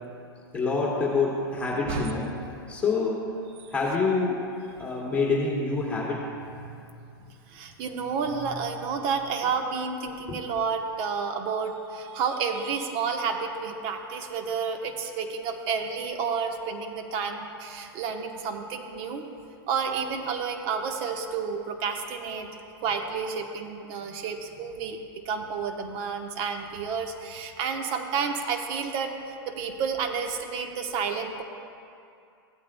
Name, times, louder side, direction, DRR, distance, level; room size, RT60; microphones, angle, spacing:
voice 1, 0.5-2.3 2.7-3.3 3.7-4.5 4.8-6.3 10.3-10.4, left 4 dB, 10° left, -5 dB, 2.1 m, -26 dB
voice 2, 1.8-2.2 3.6-3.7 6.6-6.8 7.2-19.2 19.7-22.5 22.8-25.0 25.2-31.4, right 5 dB, 45° right, 5 dB, 1.0 m, -30 dB
16.0 x 8.5 x 2.2 m, 2.5 s
hypercardioid pair, 110°, 13 cm